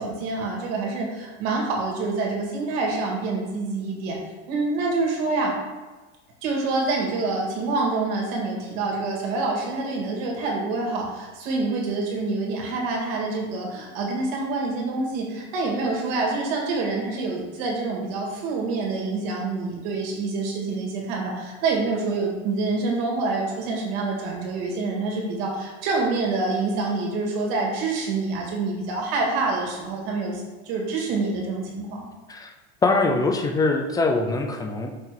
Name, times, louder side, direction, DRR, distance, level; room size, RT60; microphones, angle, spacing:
voice 1, 0.0-4.2 4.5-5.5 6.4-32.0, right 3 dB, 60° right, -1 dB, 1.9 m, -26 dB
voice 2, 32.8-34.9, left 3 dB, 10° left, 3 dB, 0.3 m, -23 dB
5.6 x 3.6 x 4.6 m, 1.2 s
supercardioid pair, 140°, 34 cm